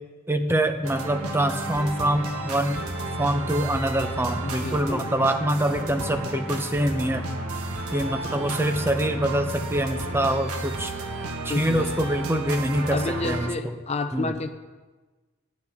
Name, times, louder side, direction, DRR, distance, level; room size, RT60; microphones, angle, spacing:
voice 1, 0.3-2.8 3.2-7.2 7.9-10.9 11.4-13.7 14.1-14.3, right 1 dB, 10° right, 7 dB, 0.7 m, -25 dB
sound 1, 0.8-13.5, right 2 dB, 80° right, 1.4 m, -32 dB
voice 2, 4.4-5.1 11.5-11.9 12.9-14.5, left 3 dB, 30° left, 9 dB, 0.5 m, -30 dB
18.5 x 11.5 x 3.5 m, 1.3 s
head